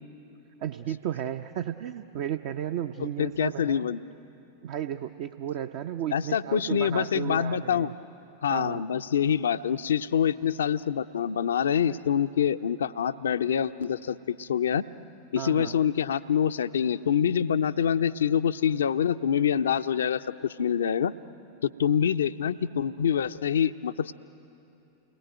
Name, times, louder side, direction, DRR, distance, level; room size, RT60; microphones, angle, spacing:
voice 1, 0.6-3.9 4.6-7.9 8.5-8.8 15.4-15.8, right 10 dB, 50° right, 7 dB, 0.7 m, -34 dB
voice 2, 3.2-4.0 6.1-7.9 8.4-14.8 15.3-21.1 21.6-24.1, left 8 dB, 65° left, 12 dB, 0.6 m, -26 dB
29.5 x 20.5 x 9.2 m, 2.9 s
figure-of-eight pair, 90°, 0 cm